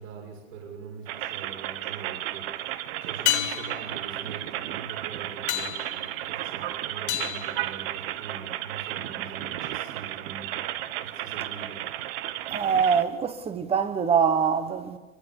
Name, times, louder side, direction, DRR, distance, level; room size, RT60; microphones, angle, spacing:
voice 1, 0.0-10.6 11.0-11.8, right 5 dB, 60° right, 6.5 m, -43 dB
sound 1, 0.9-1.5 3.3-8.4 12.9-13.0, left 16 dB, 50° left, 1.6 m, -33 dB
sound 2, 1.1-13.0, right 13 dB, 40° right, 1.2 m, -34 dB
voice 2, 12.5-15.0, right 6 dB, 15° right, 1.3 m, -24 dB
23.0 x 23.0 x 7.1 m
hypercardioid pair, 135°, 44 cm